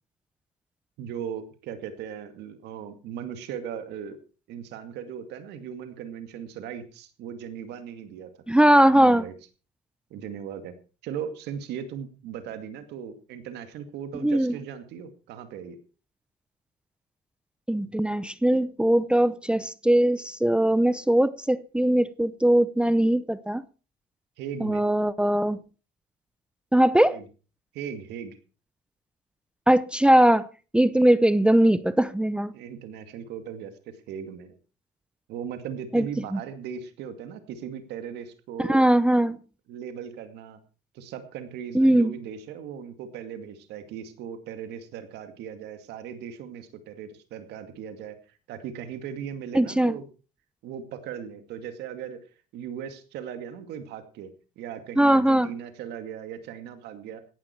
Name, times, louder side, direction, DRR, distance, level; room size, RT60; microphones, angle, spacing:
voice 1, 1.0-4.2 4.5-8.3 8.9-9.3 10.1-10.7 11.0-15.8 24.4-24.8 27.1-27.2 27.7-28.4 32.5-34.5 35.3-38.8 39.7-40.6 40.9-48.2 48.5-50.0 50.6-52.2 52.5-54.3 54.6-57.2, right 8 dB, 85° right, 2.4 m, -38 dB
voice 2, 8.5-9.2 14.1-14.5 17.7-23.6 24.6-25.6 26.7-27.2 29.7-30.5 30.7-32.5 35.9-36.1 36.3-36.4 38.6-39.4 41.7-42.2 49.5-49.9 55.0-55.5, right 1 dB, 5° right, 0.7 m, -20 dB
17.0 x 11.5 x 4.6 m
cardioid pair, 110°, 17 cm